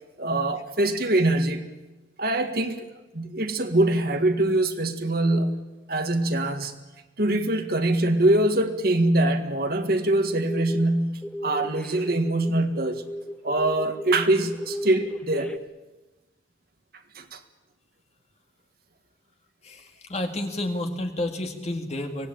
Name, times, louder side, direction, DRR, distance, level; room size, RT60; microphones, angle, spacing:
voice 1, 0.2-1.7 2.2-2.8 3.1-6.7 7.2-13.0 13.4-15.5 17.1-17.4, right 1 dB, 50° right, 6 dB, 1.8 m, -23 dB
sound 1, 10.3-10.9 11.2-15.6, equal, 5° left, 0.8 m, -34 dB
voice 2, 19.6-22.3, left 1 dB, 35° left, 4 dB, 2.2 m, -30 dB
24.5 x 18.5 x 8.9 m, 1.1 s
head